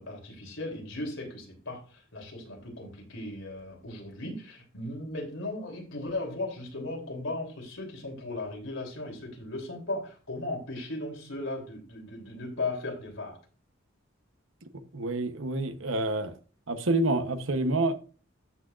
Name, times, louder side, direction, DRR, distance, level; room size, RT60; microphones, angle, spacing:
voice 1, 0.0-13.4, left 2 dB, 75° left, 3.3 m, -37 dB
voice 2, 14.9-16.3 16.7-17.9, right 2 dB, 85° right, 1.0 m, -27 dB
14.0 x 6.3 x 2.5 m
head